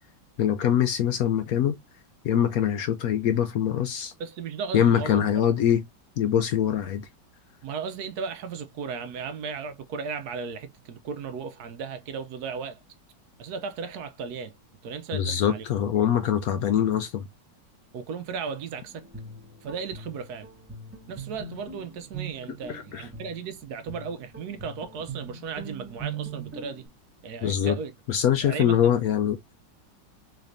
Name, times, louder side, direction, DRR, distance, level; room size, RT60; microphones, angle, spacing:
voice 1, 0.4-1.8 2.2-4.1 4.7-5.8 6.2-7.1 15.1-17.3 22.7-23.1 27.4-27.8 28.1-29.5, left 9 dB, 70° left, 0.9 m, -23 dB
voice 2, 4.2-5.2 7.6-12.8 13.4-14.5 14.8-15.6 17.9-19.0 19.6-20.5 21.1-26.9 27.2-27.9 28.4-28.9, right 5 dB, 70° right, 1.1 m, -35 dB
Guitar, 18.9-26.9, right 5 dB, 10° right, 0.8 m, -41 dB
4.0 x 3.2 x 2.5 m
omnidirectional pair, 1.9 m